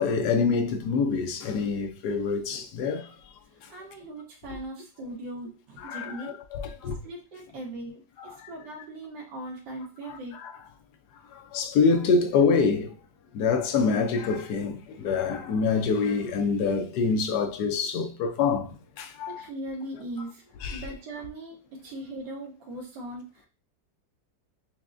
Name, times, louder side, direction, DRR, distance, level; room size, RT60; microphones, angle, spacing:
voice 1, 0.0-3.1 5.8-7.0 8.3-8.5 10.1-10.5 11.5-12.9 13.3-18.7 19.0-19.4 20.6-20.8, left 5 dB, 70° left, 1.0 m, -26 dB
voice 2, 3.7-6.4 7.0-10.3 19.3-20.4 20.7-23.5, right 1 dB, 75° right, 1.6 m, -39 dB
5.8 x 2.1 x 2.5 m
omnidirectional pair, 2.0 m